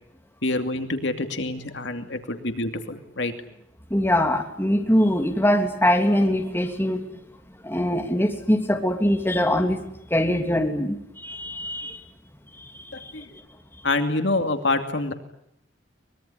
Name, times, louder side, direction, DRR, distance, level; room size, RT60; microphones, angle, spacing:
voice 1, 0.4-3.3 12.9-13.2 13.8-15.1, left 2 dB, 65° left, 7 dB, 2.6 m, -26 dB
voice 2, 3.9-7.2 7.6-9.8 10.1-12.0 12.6-13.1, equal, 10° left, 3 dB, 3.1 m, -23 dB
24.0 x 21.5 x 9.9 m, 0.76 s
head